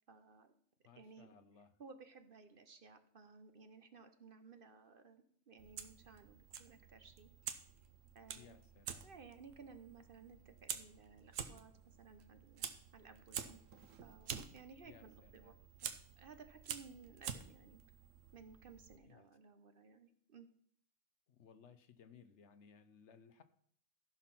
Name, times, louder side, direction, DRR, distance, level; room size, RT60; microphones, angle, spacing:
voice 1, 0.1-0.5 1.0-1.3 1.8-7.3 8.1-8.6 9.0-13.6 14.0-15.5 15.8-15.9 16.2-17.8 18.3-20.5, right 5 dB, 50° right, 9 dB, 1.0 m, -58 dB
voice 2, 0.8-1.7 8.3-9.1 14.8-15.6 19.1-19.2 21.3-23.4, left 7 dB, 65° left, 12 dB, 1.0 m, -62 dB
Fire, 5.6-19.0, right 8 dB, 90° right, 1.2 m, -49 dB
13.5 x 5.9 x 5.9 m, 0.64 s
omnidirectional pair, 1.3 m